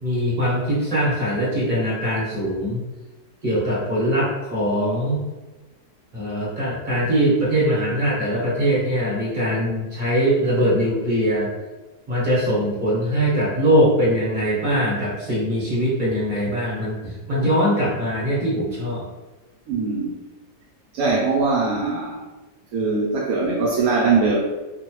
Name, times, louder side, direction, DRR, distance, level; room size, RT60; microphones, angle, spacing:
voice 1, 0.0-2.8 3.4-5.2 6.1-11.5 12.1-19.1, equal, 35° right, -7 dB, 0.8 m, -22 dB
voice 2, 19.7-20.2 20.9-22.2 22.7-24.4, right 4 dB, 70° right, -2 dB, 0.9 m, -21 dB
3.0 x 2.2 x 2.9 m, 1.1 s
omnidirectional pair, 1.7 m